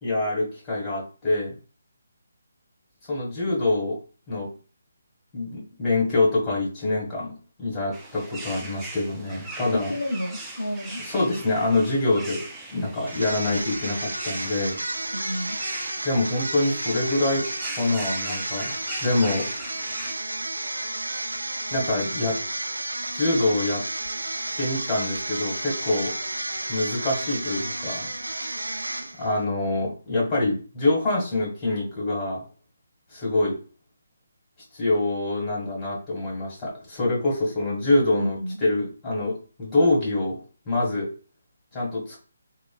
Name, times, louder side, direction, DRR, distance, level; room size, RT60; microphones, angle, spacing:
voice 1, 0.0-1.5 3.1-4.0 4.3-4.5 5.3-9.9 11.0-14.8 16.0-17.5 17.8-18.7 19.0-19.5 21.7-22.4 23.1-23.8 24.6-26.1 26.7-28.1 29.2-32.4 33.1-33.6 34.7-40.4 40.7-41.1 41.7-42.2, left 2 dB, 15° left, -4 dB, 1.4 m, -25 dB
sound 1, 7.9-20.1, right 2 dB, 10° right, 0.5 m, -40 dB
voice 2, 9.7-11.0 15.1-15.6 38.1-38.6, equal, 75° left, 2 dB, 0.5 m, -31 dB
sound 2, 13.1-29.4, right 2 dB, 80° right, 0.3 m, -32 dB
3.1 x 2.2 x 2.3 m, 0.36 s
figure-of-eight pair, 145°, 0 cm